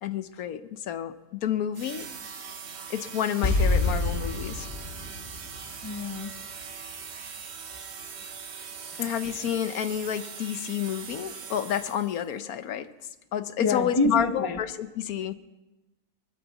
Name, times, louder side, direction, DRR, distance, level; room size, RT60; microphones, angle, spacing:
voice 1, 0.0-2.1 2.9-4.7 9.0-12.9 13.3-15.3, left 9 dB, 75° left, 11 dB, 1.2 m, -30 dB
sound 1, 1.7-12.3, right 6 dB, 50° right, 1.3 m, -41 dB
sound 2, 3.4-6.6 6.9-7.0, left 2 dB, 50° left, 2.3 m, -28 dB
voice 2, 5.8-6.4 8.9-9.0 13.6-14.6, left 2 dB, 20° left, 8 dB, 0.8 m, -27 dB
23.0 x 12.5 x 4.1 m, 1.1 s
omnidirectional pair, 1.6 m